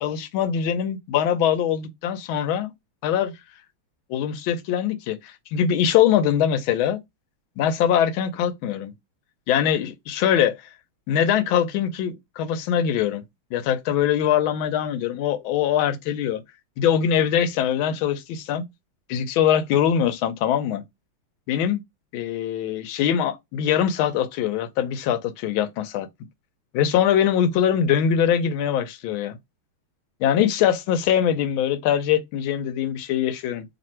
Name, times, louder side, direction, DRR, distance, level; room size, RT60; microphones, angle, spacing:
voice 1, 0.0-2.7 3.0-3.3 4.1-7.0 7.6-8.9 9.5-10.6 11.1-13.2 13.5-16.4 16.8-18.6 19.1-20.8 21.5-21.8 22.1-26.1 26.7-29.4 30.2-33.6, left 9 dB, 80° left, 1.4 m, -22 dB
3.2 x 2.5 x 4.2 m
omnidirectional pair, 2.3 m